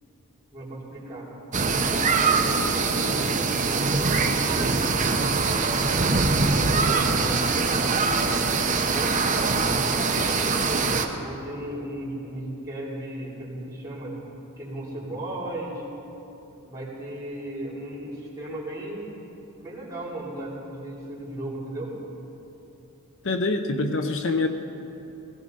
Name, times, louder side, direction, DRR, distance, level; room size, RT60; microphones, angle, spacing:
voice 1, 0.5-1.3 1.7-4.9 6.8-8.2 8.9-10.9 11.2-14.2 14.6-15.8 16.6-19.1 19.6-22.0, right 1 dB, 15° right, -8 dB, 3.3 m, -36 dB
sound 1, 1.5-11.1, right 4 dB, 35° right, 0.8 m, -23 dB
voice 2, 23.2-24.5, left 3 dB, 60° left, 6 dB, 0.7 m, -25 dB
16.5 x 16.5 x 4.0 m, 2.9 s
head